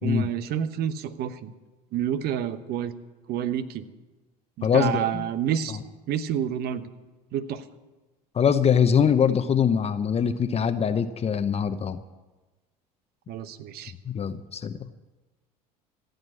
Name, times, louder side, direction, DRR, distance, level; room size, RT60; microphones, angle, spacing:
voice 1, 0.0-1.5 1.9-2.9 3.3-3.9 4.6-5.8 6.1-6.9 7.3-7.7 13.3-13.9, right 9 dB, 55° right, 12 dB, 1.1 m, -29 dB
voice 2, 4.6-5.3 5.7-5.8 8.3-12.0 14.1-14.8, left 7 dB, 35° left, 10 dB, 0.8 m, -23 dB
15.0 x 8.0 x 9.7 m, 1.2 s
hypercardioid pair, 80°, 19 cm